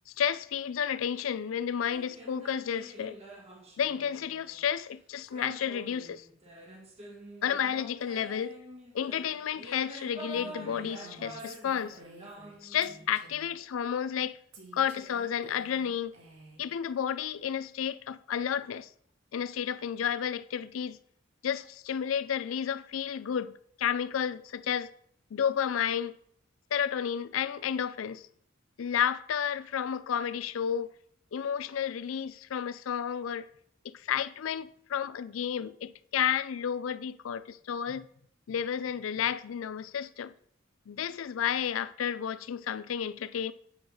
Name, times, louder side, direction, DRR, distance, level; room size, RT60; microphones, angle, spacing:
voice 1, 0.1-3.2 3.8-6.3 7.4-8.5 8.9-12.0 12.6-14.4 14.7-16.1 16.6-18.9 19.3-21.0 21.4-24.9 25.3-26.1 26.7-28.3 28.8-30.9 31.3-33.5 33.8-38.1 38.5-40.3 40.9-43.5, left 8 dB, 90° left, 0.4 m, -31 dB
sound 1, 1.9-4.6 5.3-13.0, equal, 30° right, 1.7 m, -47 dB
Female speech woman speaking, 10.3-12.6 12.8-13.6 14.5-16.7, right 3 dB, 85° right, 2.1 m, -52 dB
9.1 x 4.0 x 6.4 m
head